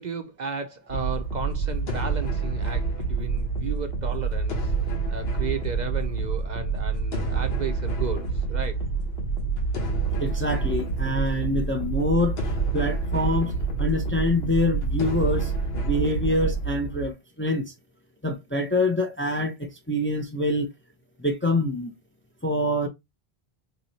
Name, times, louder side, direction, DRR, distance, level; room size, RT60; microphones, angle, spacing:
voice 1, 0.0-4.7 5.1-8.8, right 6 dB, 55° right, 0.6 m, -34 dB
sound 1, 0.9-17.1, right 4 dB, 75° left, 1.3 m, -27 dB
voice 2, 10.2-13.5 13.8-15.5 15.8-17.6 18.2-20.7 21.2-21.9 22.4-22.9, left 1 dB, 15° left, 0.5 m, -25 dB
3.1 x 2.9 x 4.0 m
omnidirectional pair, 1.0 m